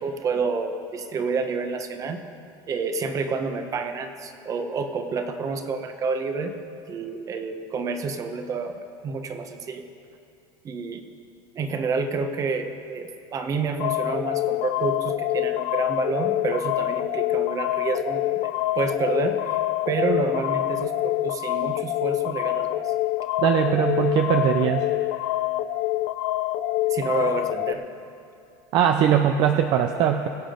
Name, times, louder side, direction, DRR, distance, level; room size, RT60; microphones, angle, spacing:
voice 1, 0.0-2.2 2.7-6.6 6.9-9.9 10.6-11.0 11.5-19.6 19.9-22.9 26.9-27.8, right 4 dB, 30° right, 7 dB, 1.1 m, -29 dB
sound 1, 13.8-27.7, left 15 dB, 75° left, 0.5 m, -26 dB
voice 2, 23.4-24.9 28.7-30.3, right 9 dB, 50° right, 6 dB, 0.6 m, -20 dB
22.0 x 8.3 x 3.9 m, 2.6 s
supercardioid pair, 130°, 11 cm